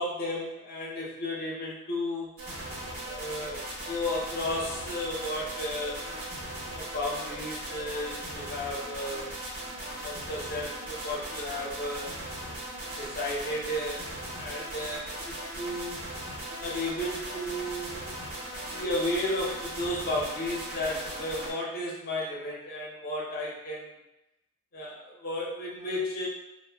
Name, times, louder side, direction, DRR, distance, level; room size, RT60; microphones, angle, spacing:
voice 1, 0.0-2.4 3.0-6.0 6.7-9.4 10.0-12.1 13.0-16.0 16.6-18.1 18.6-23.9 24.7-26.3, left 1 dB, 45° left, -3 dB, 0.7 m, -33 dB
sound 1, 2.4-21.5, right 1 dB, 80° right, 1.0 m, -38 dB
2.5 x 2.2 x 3.3 m, 0.93 s
head